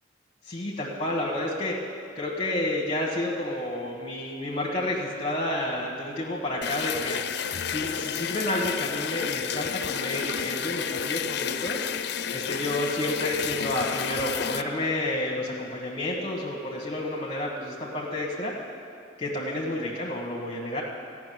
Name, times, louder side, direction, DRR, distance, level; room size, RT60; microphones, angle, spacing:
voice 1, 0.4-1.8 2.1-7.2 7.7-11.8 12.3-18.5 19.2-20.8, left 1 dB, 35° left, -3 dB, 1.4 m, -30 dB
sound 1, 6.6-14.6, left 7 dB, 65° left, 0.5 m, -31 dB
15.5 x 6.2 x 9.3 m, 2.5 s
head